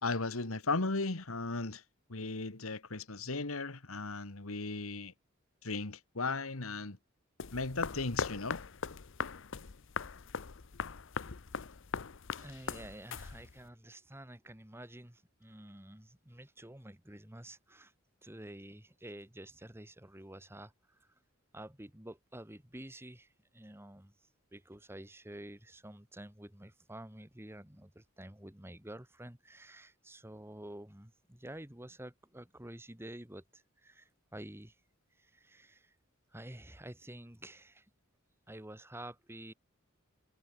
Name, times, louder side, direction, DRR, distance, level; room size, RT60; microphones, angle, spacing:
voice 1, 0.0-1.8 2.1-5.1 5.6-7.0 7.5-8.6, left 3 dB, 85° left, 1.8 m, -36 dB
sound 1, 7.4-13.7, left 5 dB, 60° left, 0.8 m, -40 dB
voice 2, 12.4-17.9 18.2-21.1 21.5-24.1 24.5-34.8 35.2-36.0 36.3-37.9 38.5-39.5, right 1 dB, 10° right, 1.8 m, -49 dB
head